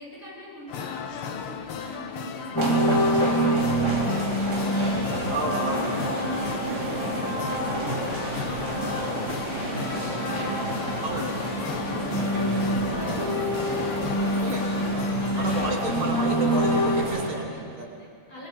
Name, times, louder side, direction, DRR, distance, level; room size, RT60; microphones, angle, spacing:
voice 1, 0.0-5.0 6.1-14.7 15.2-16.0 18.0-18.5, left 2 dB, 40° left, -6 dB, 8.4 m, -42 dB
sound 1, 0.7-15.8, left 7 dB, 85° left, 1.9 m, -35 dB
sound 2, 2.5-11.1 11.4-17.0, right 1 dB, 10° left, 1.6 m, -28 dB
sound 3, 2.6-17.3, right 1 dB, 35° right, 2.9 m, -31 dB
voice 2, 5.3-6.1 11.0-11.3 13.1-13.3 14.3-14.6 14.9-15.1 15.4-18.0, right 1 dB, 75° right, -2 dB, 3.9 m, -32 dB
27.0 x 22.0 x 5.3 m, 2.2 s
omnidirectional pair, 2.3 m